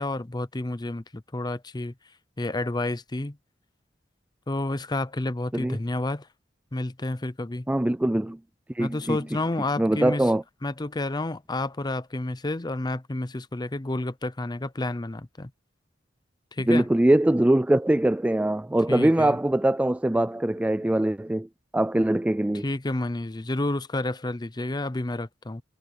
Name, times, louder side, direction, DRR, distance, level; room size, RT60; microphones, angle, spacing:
voice 1, 0.0-1.9 2.4-3.4 4.5-6.3 6.7-7.7 8.8-10.3 10.6-15.5 16.5-16.9 18.9-19.4 22.6-25.6, left 2 dB, 20° left, 0.7 m, -30 dB
voice 2, 7.7-8.4 8.7-9.2 9.8-10.4 16.7-21.5 21.7-22.6, right 1 dB, 5° right, 0.3 m, -22 dB
head